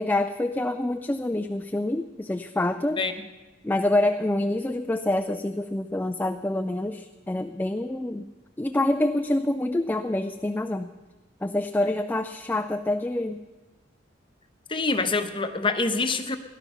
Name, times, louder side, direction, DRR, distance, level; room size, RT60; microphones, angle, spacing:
voice 1, 0.0-3.0 3.6-8.3 8.6-10.9 11.4-13.4, left 1 dB, 10° left, 6 dB, 0.4 m, -26 dB
voice 2, 14.7-16.4, left 3 dB, 25° left, 7 dB, 0.9 m, -26 dB
17.5 x 11.5 x 5.6 m, 1.2 s
head